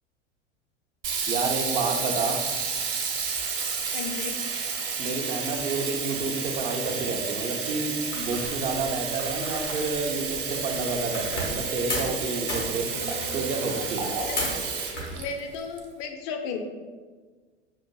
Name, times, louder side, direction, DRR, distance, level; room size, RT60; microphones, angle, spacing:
Sink (filling or washing), 1.0-15.8, right 5 dB, 50° right, 0.8 m, -31 dB
voice 1, 1.3-2.4 5.0-12.9 13.3-14.1, right 3 dB, 20° right, 3 dB, 0.4 m, -30 dB
voice 2, 3.9-4.3 14.3-14.4 15.1-16.6, left 5 dB, 45° left, 5 dB, 0.5 m, -34 dB
sound 1, 8.1-11.6 11.9-12.2 12.5-14.6 14.9-15.6, left 1 dB, 90° left, 1.2 m, -35 dB
sound 2, 13.0-15.1, right 2 dB, 75° right, 0.8 m, -38 dB
6.0 x 2.5 x 2.2 m, 1.5 s
figure-of-eight pair, 80°, 35 cm